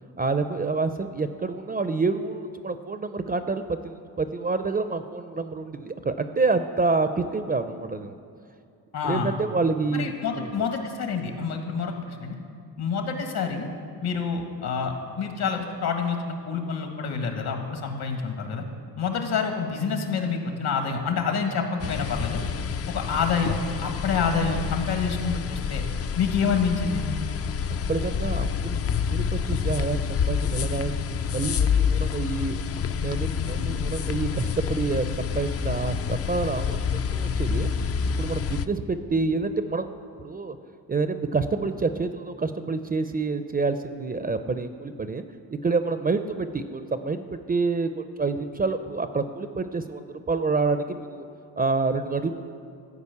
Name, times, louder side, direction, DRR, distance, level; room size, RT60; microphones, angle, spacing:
voice 1, 0.2-8.1 9.0-10.7 27.9-28.8 29.1-32.6 33.0-36.8 37.1-37.7 38.2-39.9 40.2-40.6 40.9-45.2 45.6-51.2 51.6-52.4, right 3 dB, 20° right, 9 dB, 0.5 m, -27 dB
voice 2, 8.9-9.3 9.9-12.4 12.8-13.7 14.0-18.6 19.0-22.4 22.9-25.8 26.2-27.0, left 5 dB, 65° left, 4 dB, 1.8 m, -27 dB
sound 1, 21.8-38.7, left 7 dB, 35° left, 0.4 m, -28 dB
13.0 x 5.2 x 8.3 m, 2.4 s
cardioid pair, 85°, 41 cm